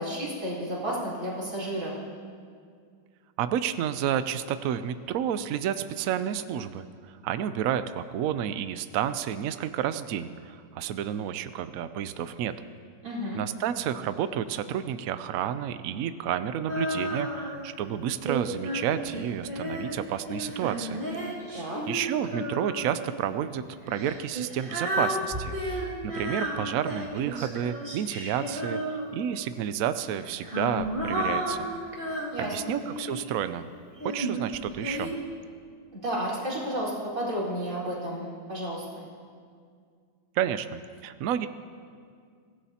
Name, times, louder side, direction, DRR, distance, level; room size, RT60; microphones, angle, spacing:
voice 1, 0.0-1.9 13.0-13.4 21.5-21.8 32.3-32.7 35.9-39.0, equal, 45° right, -8 dB, 4.6 m, -32 dB
voice 2, 3.4-12.5 13.3-21.0 21.9-28.8 29.1-31.7 32.4-33.6 34.0-35.1 40.4-41.5, right 9 dB, 75° right, 11 dB, 0.8 m, -30 dB
Female singing, 16.7-17.7 18.3-23.1 23.9-29.4 30.2-33.3 34.0-35.1, equal, 30° right, 2.2 m, -33 dB
23.5 x 16.5 x 2.8 m, 2.1 s
omnidirectional pair, 2.0 m